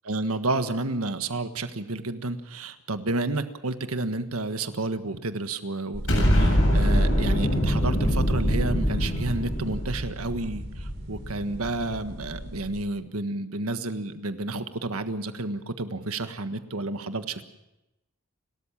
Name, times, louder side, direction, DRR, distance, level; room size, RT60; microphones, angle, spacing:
voice 1, 0.1-17.4, right 2 dB, 80° right, 10 dB, 1.5 m, -31 dB
sound 1, 5.9-12.7, right 1 dB, 55° right, 5.8 m, -40 dB
Explosion, 6.1-11.2, equal, 65° left, 7.7 m, -23 dB
30.0 x 13.5 x 7.4 m, 0.94 s
head